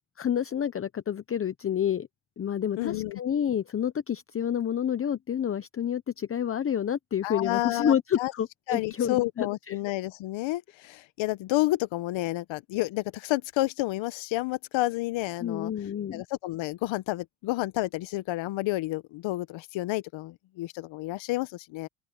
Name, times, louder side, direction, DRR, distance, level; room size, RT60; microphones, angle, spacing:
voice 1, 0.2-2.1 2.4-9.8 15.4-16.2, left 9 dB, 30° left, 0.8 m, -29 dB
voice 2, 2.8-3.2 7.2-8.3 8.7-15.7 16.1-21.9, left 18 dB, 70° left, 1.0 m, -30 dB
open air
cardioid pair, 100°, 47 cm